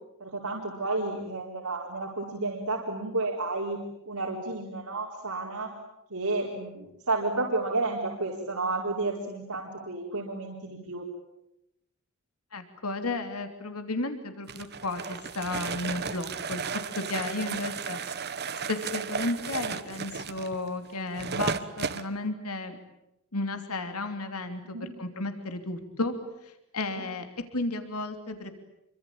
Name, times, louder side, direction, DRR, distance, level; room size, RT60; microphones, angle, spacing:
voice 1, 0.2-3.8 4.1-5.7 6.1-11.1 17.4-17.6 24.6-24.9 26.9-27.0, right 2 dB, 80° right, -2 dB, 4.4 m, -31 dB
voice 2, 12.5-16.6 17.0-18.0 18.7-22.8 23.3-26.1 26.4-27.3 27.5-28.5, left 2 dB, 80° left, 7 dB, 3.1 m, -33 dB
sound 1, 14.5-22.1, right 5 dB, 50° right, 1.4 m, -34 dB
27.5 x 24.5 x 8.8 m, 0.85 s
head